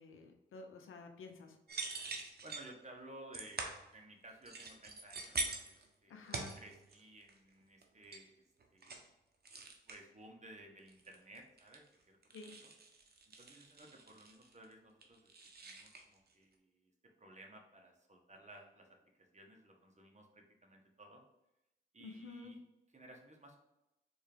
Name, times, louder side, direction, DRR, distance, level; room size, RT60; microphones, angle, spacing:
voice 1, 0.0-1.6 6.1-6.6 12.3-12.5 22.0-22.5, left 4 dB, 85° left, 5 dB, 0.8 m, -51 dB
sound 1, 1.7-2.7 3.3-3.9 4.5-5.9 6.3-7.0 7.3-7.5 7.8-8.2 8.6-9.1 9.4-10.0 10.9-11.9 12.2-14.7 15.0-16.0, right 3 dB, 50° right, 1.0 m, -44 dB
voice 2, 2.4-3.6 3.9-8.4 8.7-9.1 9.9-12.2 12.6-12.7 13.4-15.3 15.6-16.9 17.2-21.2 21.9-22.6 22.9-23.6, right 1 dB, 35° right, 1 dB, 1.3 m, -57 dB
4.4 x 3.5 x 3.4 m, 0.93 s
cardioid pair, 55°, 20 cm